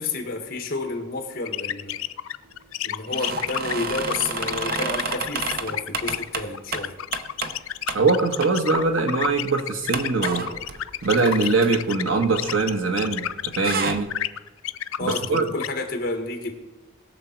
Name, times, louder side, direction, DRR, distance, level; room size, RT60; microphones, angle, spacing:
voice 1, 0.0-2.0 2.8-7.0 15.0-16.5, left 3 dB, 45° left, 4 dB, 1.7 m, -30 dB
sound 1, 1.4-13.8 14.1-15.7, left 11 dB, 90° left, 0.4 m, -30 dB
sound 2, 3.1-7.6 7.9-8.0 8.4-8.9 9.2-9.3 9.9-13.0 13.3-14.0, right 4 dB, 45° right, 0.7 m, -31 dB
voice 2, 7.9-10.5 11.0-14.1 15.0-15.4, right 3 dB, 75° right, 4 dB, 1.4 m, -22 dB
20.0 x 6.8 x 4.6 m, 1.2 s
head